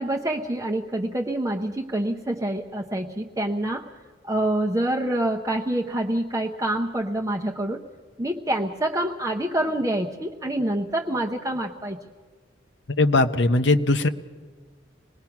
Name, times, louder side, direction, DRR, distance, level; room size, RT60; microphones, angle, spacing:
voice 1, 0.0-3.8 4.2-7.8 8.2-12.0, right 1 dB, 15° right, 0 dB, 0.8 m, -26 dB
voice 2, 13.0-14.1, left 2 dB, 65° left, 10 dB, 0.8 m, -19 dB
25.5 x 20.0 x 5.9 m, 1.5 s
head